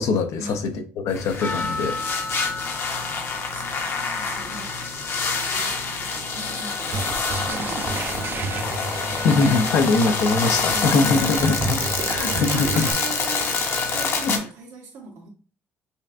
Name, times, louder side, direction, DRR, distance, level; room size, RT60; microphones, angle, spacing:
voice 1, 0.0-1.9 9.2-11.8 12.1-12.9 14.2-14.4, left 4 dB, 80° left, 0.6 m, -22 dB
sound 1, 1.1-14.4, left 4 dB, 50° left, 0.8 m, -27 dB
Percussion, 1.4-5.8 6.4-6.5, left 3 dB, 20° left, 0.5 m, -35 dB
voice 2, 1.5-5.1 5.5-7.0 7.4-8.6 10.7-15.3, right 3 dB, 80° right, 1.2 m, -39 dB
sound 2, 6.9-12.9, right 4 dB, 45° right, 0.5 m, -31 dB
5.1 x 2.2 x 2.5 m
cardioid pair, 100°, 5 cm